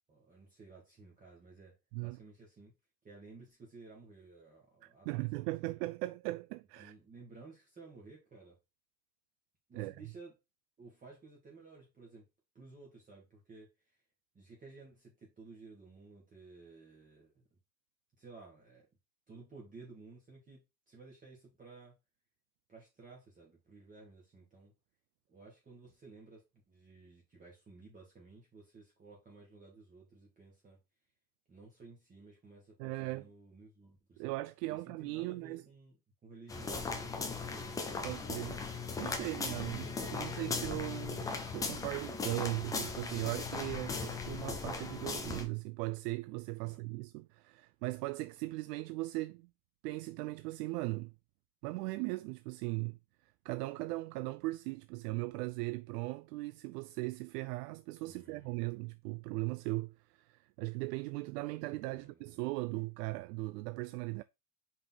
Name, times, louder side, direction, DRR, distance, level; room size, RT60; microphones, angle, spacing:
voice 1, 0.1-1.7 2.0-2.7 3.0-5.8 6.8-8.6 9.7-10.3 10.8-12.2 12.6-13.7 14.3-17.4 18.2-18.9 19.3-20.6 20.9-21.9 22.7-24.7 25.3-30.8 31.5-34.3 34.7-35.9 36.2-38.7 39.2-40.5 46.6-46.8 58.0-58.7 61.9-62.3, right 3 dB, 15° right, 1.9 m, -55 dB
voice 2, 4.8-6.9 9.7-10.0 32.8-33.3 34.2-35.6 38.0-38.6 39.0-49.5 49.8-51.1 51.6-53.0 53.4-64.2, right 22 dB, 90° right, 0.6 m, -38 dB
sound 1, 36.5-45.5, left 4 dB, 10° left, 0.3 m, -38 dB
5.1 x 4.0 x 5.7 m
cardioid pair, 170°, 46 cm